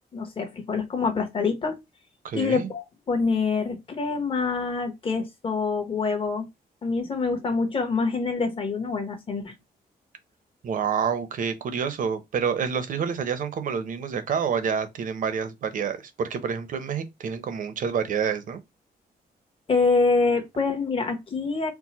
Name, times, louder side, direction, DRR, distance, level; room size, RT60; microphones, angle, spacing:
voice 1, 0.1-1.8 2.3-6.5 6.8-9.5 19.7-21.7, left 4 dB, 35° left, 1.1 m, -25 dB
voice 2, 2.2-2.7 10.6-18.6, right 7 dB, 55° right, 0.8 m, -28 dB
4.6 x 2.1 x 4.1 m
wide cardioid pair, 175°, 16 cm